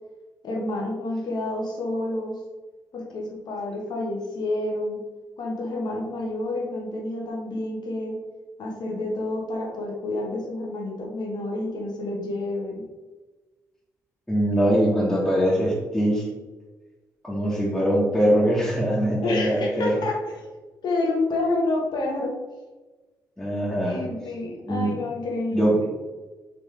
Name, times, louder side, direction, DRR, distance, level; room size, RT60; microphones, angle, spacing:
voice 1, 0.4-2.4 2.9-5.0 5.4-8.2 8.6-12.8 19.2-20.5 20.8-22.3 23.8-25.9, left 2 dB, 65° left, 0 dB, 1.2 m, -29 dB
voice 2, 14.3-16.3 17.2-20.0 23.4-24.0 24.7-24.9 25.5-25.7, equal, 5° left, -8 dB, 1.4 m, -22 dB
4.1 x 3.1 x 3.3 m, 1.2 s
hypercardioid pair, 45°, 8 cm